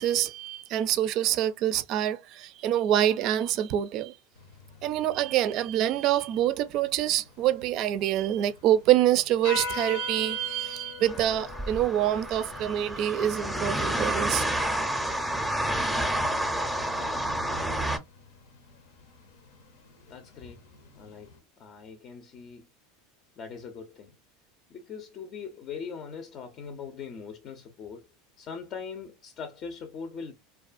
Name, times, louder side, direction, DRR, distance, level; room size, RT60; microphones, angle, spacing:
voice 1, 0.0-4.2 4.8-14.4, right 12 dB, 55° right, 0.4 m, -26 dB
sound 1, 4.3-21.4, left 4 dB, 80° left, 0.7 m, -45 dB
sound 2, 11.0-18.0, right 1 dB, ahead, 0.6 m, -29 dB
voice 2, 20.1-20.6 20.9-21.3 21.6-22.7 23.4-24.2 24.7-28.0 28.4-30.3, left 6 dB, 45° left, 0.5 m, -41 dB
2.5 x 2.3 x 2.4 m
hypercardioid pair, 100°, 0 cm